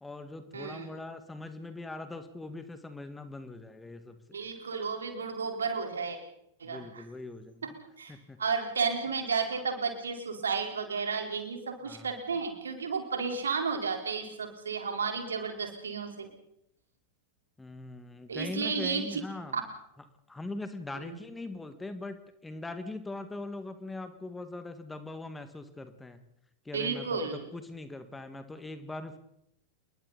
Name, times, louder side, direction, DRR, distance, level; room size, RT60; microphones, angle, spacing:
voice 1, 0.0-4.4 6.6-7.8 8.1-8.4 11.9-12.1 17.6-19.6 20.3-22.2 22.4-26.2 26.7-29.2, left 2 dB, 10° left, 10 dB, 1.9 m, -41 dB
voice 2, 0.5-0.9 4.3-6.2 6.6-7.0 7.6-16.3 18.3-19.2 19.5-19.6 21.0-21.2 26.7-27.5, right 5 dB, 70° right, 4 dB, 4.3 m, -33 dB
29.0 x 22.0 x 4.2 m, 0.78 s
figure-of-eight pair, 90°, 0 cm